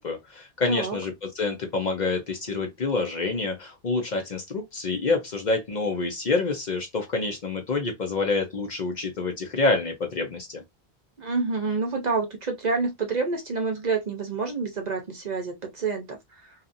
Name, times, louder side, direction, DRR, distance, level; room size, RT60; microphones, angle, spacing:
voice 1, 0.0-10.6, left 3 dB, 50° left, 0.7 m, -27 dB
voice 2, 0.7-1.0 11.2-16.4, right 4 dB, 50° right, 0.7 m, -28 dB
2.7 x 2.4 x 2.4 m
omnidirectional pair, 1.1 m